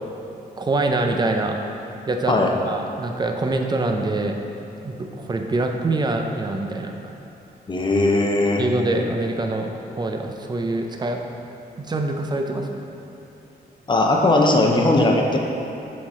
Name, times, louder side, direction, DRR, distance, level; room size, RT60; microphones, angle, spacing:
voice 1, 0.6-1.6 2.1-2.4 2.7-4.3 4.8-7.2 8.6-9.7 10.0-11.2 11.8-12.9, right 2 dB, 25° right, 3 dB, 0.5 m, -24 dB
voice 2, 7.7-8.6 13.9-15.4, left 2 dB, 30° left, 1 dB, 0.7 m, -18 dB
7.5 x 3.9 x 4.2 m, 3.0 s
wide cardioid pair, 120°, 17 cm